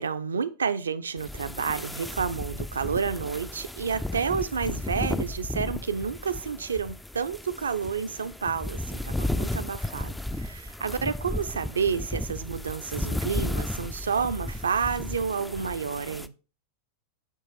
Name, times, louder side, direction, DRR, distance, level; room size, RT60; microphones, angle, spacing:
voice 1, 0.0-16.3, right 6 dB, 70° right, 0.4 m, -30 dB
sound 1, 1.2-16.3, left 1 dB, 5° left, 0.3 m, -34 dB
8.3 x 3.1 x 4.3 m
figure-of-eight pair, 90°, 0 cm